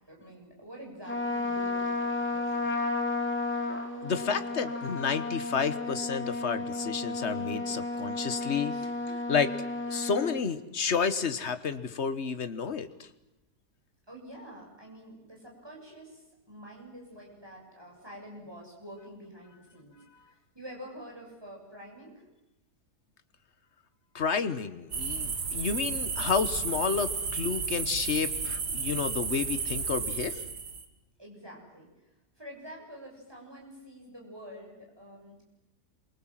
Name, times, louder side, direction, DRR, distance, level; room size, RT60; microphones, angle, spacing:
voice 1, 0.1-2.9 7.8-8.1 8.7-8.9 14.1-19.9 20.3-22.2 31.2-31.9 32.4-35.4, equal, 15° right, -1 dB, 7.5 m, -47 dB
Trumpet, 1.1-10.4, left 3 dB, 5° left, 3.3 m, -33 dB
voice 2, 4.0-9.5 9.9-13.1 24.1-30.4, left 6 dB, 45° left, 12 dB, 1.5 m, -31 dB
sound 1, 24.9-30.8, right 5 dB, 75° right, 2.5 m, -33 dB
27.5 x 24.0 x 7.6 m, 0.95 s
omnidirectional pair, 1.7 m